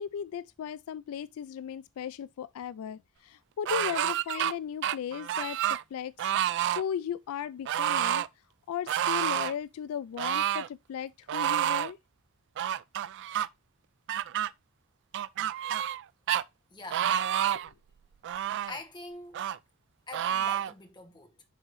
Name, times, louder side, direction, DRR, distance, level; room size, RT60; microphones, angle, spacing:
voice 1, 0.0-6.3 6.8-8.3 8.7-12.0 17.5-17.6, left 8 dB, 70° left, 0.3 m, -36 dB
sound 1, 3.7-4.5 4.8-5.8 6.2-6.8 7.7-8.3 8.9-9.5 10.2-10.7 11.3-11.9 12.6-13.5 14.1-14.5 15.1-16.0 16.3-16.4 16.9-17.7 18.2-18.8 19.3-19.6 20.1-20.7, right 11 dB, 55° right, 0.3 m, -29 dB
voice 2, 16.7-17.1 18.7-19.4 20.1-21.4, left 2 dB, 20° left, 1.2 m, -44 dB
10.5 x 3.7 x 3.1 m
head